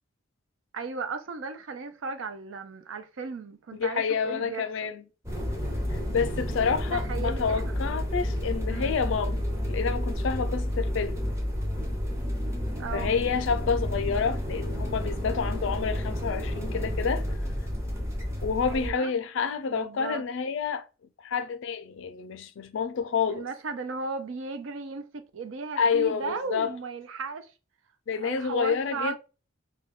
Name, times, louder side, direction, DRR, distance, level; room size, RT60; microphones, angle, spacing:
voice 1, 0.7-4.9 6.9-7.7 8.7-9.0 12.8-13.2 18.7-19.1 19.7-20.2 23.3-27.5 28.2-29.2, right 4 dB, 70° right, 0.4 m, -36 dB
voice 2, 3.7-5.0 5.9-11.2 12.9-17.2 18.4-20.8 21.2-23.5 25.8-26.7 28.1-29.2, left 6 dB, 65° left, 0.4 m, -29 dB
sound 1, 5.2-18.9, equal, 15° right, 0.6 m, -30 dB
2.3 x 2.1 x 3.5 m
head